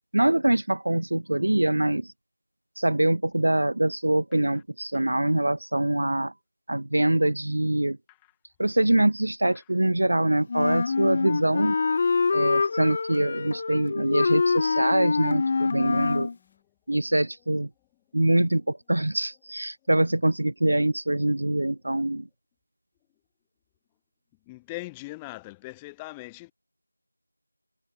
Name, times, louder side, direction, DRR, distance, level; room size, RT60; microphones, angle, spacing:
voice 1, 0.1-2.1 2.8-6.3 6.7-8.0 8.6-11.8 12.3-16.3 16.9-17.7 18.1-22.3, right 1 dB, 55° right, 0.9 m, -24 dB
Wind instrument woodwind instrument, 10.5-16.3, left 4 dB, 20° left, 0.5 m, -25 dB
voice 2, 24.5-26.5, left 23 dB, 5° left, 1.6 m, -40 dB
figure-of-eight pair, 175°, 0 cm